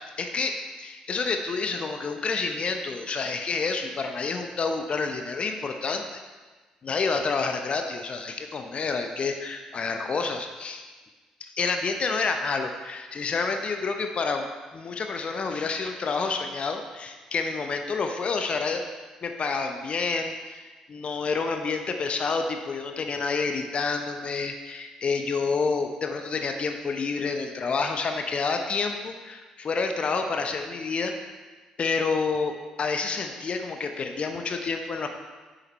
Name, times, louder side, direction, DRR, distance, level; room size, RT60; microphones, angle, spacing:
voice 1, 0.2-6.2 6.8-10.8 11.4-14.5 14.7-18.9 19.2-31.1 31.8-35.1, left 4 dB, 40° left, 5 dB, 0.8 m, -29 dB
9.6 x 7.7 x 3.2 m, 1.3 s
figure-of-eight pair, 45°, 3 cm